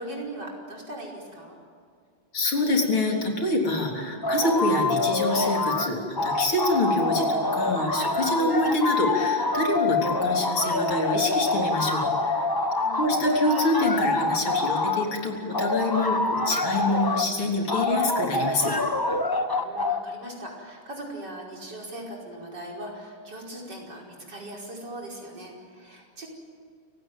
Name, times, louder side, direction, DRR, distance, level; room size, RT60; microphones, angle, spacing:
voice 1, 0.0-1.6 12.7-13.1 19.5-26.3, right 1 dB, 50° right, -1 dB, 5.8 m, -39 dB
voice 2, 2.3-12.5 13.0-18.7, left 2 dB, 75° left, 1 dB, 4.5 m, -26 dB
sound 1, 4.2-5.9 6.2-15.1 15.5-17.3 17.7-20.0, left 2 dB, 15° left, 0.9 m, -26 dB
29.0 x 17.5 x 9.1 m, 2.2 s
omnidirectional pair, 2.3 m